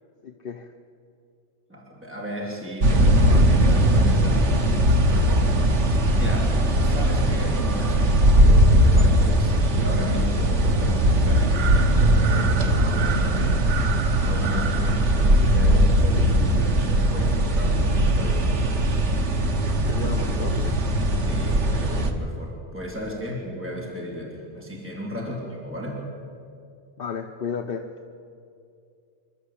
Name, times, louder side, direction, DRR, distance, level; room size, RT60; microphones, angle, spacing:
voice 1, 0.2-0.7 19.9-20.8 25.2-25.4 27.0-27.9, left 6 dB, 55° left, 4 dB, 1.0 m, -33 dB
voice 2, 1.7-6.5 6.8-13.6 14.2-18.5 21.2-26.0, equal, 10° right, -3 dB, 3.4 m, -35 dB
sound 1, 2.8-22.1, right 1 dB, 80° right, 1.7 m, -19 dB
27.0 x 12.0 x 8.6 m, 2.4 s
omnidirectional pair, 1.2 m